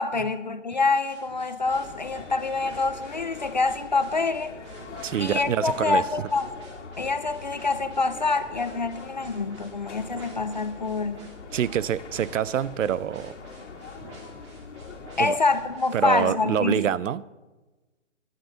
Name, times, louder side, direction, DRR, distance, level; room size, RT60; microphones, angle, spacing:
voice 1, 0.0-4.6 5.2-6.5 7.0-11.2 15.2-16.9, left 3 dB, 40° left, 12 dB, 0.4 m, -26 dB
sound 1, 1.0-16.4, right 2 dB, 20° right, 1.6 m, -49 dB
sound 2, 1.6-15.3, left 4 dB, 65° left, 1.7 m, -43 dB
voice 2, 5.0-6.0 11.5-13.4 15.2-15.4 15.9-17.2, right 9 dB, 75° right, 19 dB, 0.5 m, -26 dB
13.0 x 10.0 x 3.9 m, 1.2 s
hypercardioid pair, 165°, 38 cm